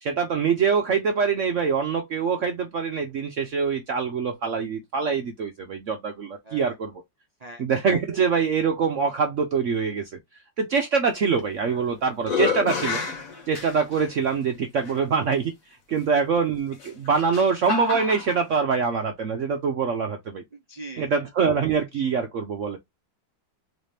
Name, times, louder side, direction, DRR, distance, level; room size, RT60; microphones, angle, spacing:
voice 1, 0.0-7.0 7.6-10.2 10.6-13.0 13.5-15.5 15.9-20.4 21.0-22.8, right 5 dB, 65° right, 0.7 m, -24 dB
sound 1, 11.4-11.8 12.2-14.1 14.8-14.9 16.7-18.4, left 5 dB, 50° left, 1.6 m, -29 dB
voice 2, 20.5-21.1, right 2 dB, 85° right, 0.3 m, -41 dB
4.1 x 3.2 x 2.7 m
omnidirectional pair, 2.0 m